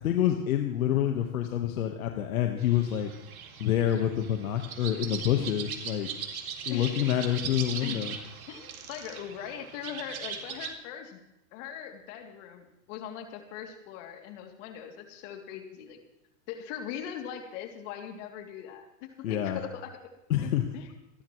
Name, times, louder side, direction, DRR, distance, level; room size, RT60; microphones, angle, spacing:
voice 1, 0.0-3.1 3.6-6.1 6.6-8.1 19.2-19.6 20.3-20.7, left 11 dB, 80° left, 4 dB, 1.5 m, -27 dB
sound 1, 2.6-10.7, right 7 dB, 85° right, 2.4 m, -40 dB
voice 2, 7.8-8.1 8.5-11.2 11.5-16.0 16.5-20.1 20.4-20.9, left 9 dB, 60° left, 2 dB, 3.0 m, -41 dB
27.0 x 11.5 x 3.2 m, 0.87 s
hypercardioid pair, 110°, 41 cm